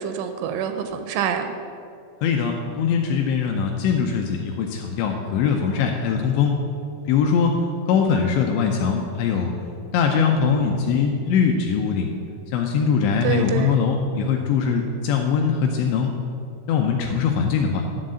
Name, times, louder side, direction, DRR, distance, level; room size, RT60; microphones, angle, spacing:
voice 1, 0.0-1.5 13.2-13.8, right 8 dB, 85° right, 7 dB, 2.9 m, -26 dB
voice 2, 2.2-6.6 7.1-7.6 7.9-9.5 9.9-12.1 12.5-16.1 16.7-17.8, left 6 dB, 80° left, 2 dB, 2.6 m, -21 dB
11.0 x 3.9 x 7.5 m, 2.4 s
omnidirectional pair, 5.6 m